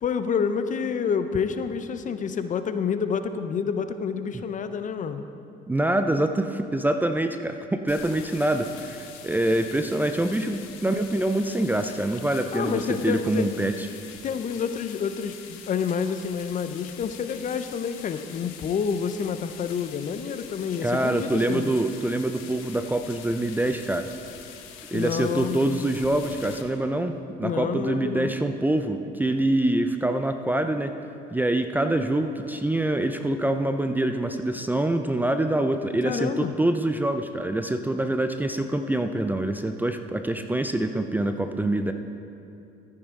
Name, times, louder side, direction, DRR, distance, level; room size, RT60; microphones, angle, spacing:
voice 1, 0.0-5.3 10.3-10.7 12.5-13.6 14.2-21.7 24.9-25.8 27.4-28.4 36.0-36.5, left 6 dB, 40° left, 10 dB, 0.6 m, -28 dB
voice 2, 5.7-13.9 20.8-24.1 24.9-30.9 31.3-41.9, right 1 dB, 10° right, 7 dB, 0.4 m, -25 dB
sound 1, 7.9-26.6, left 8 dB, 80° left, 1.0 m, -44 dB
13.5 x 9.5 x 3.7 m, 2.7 s
supercardioid pair, 95°, 21 cm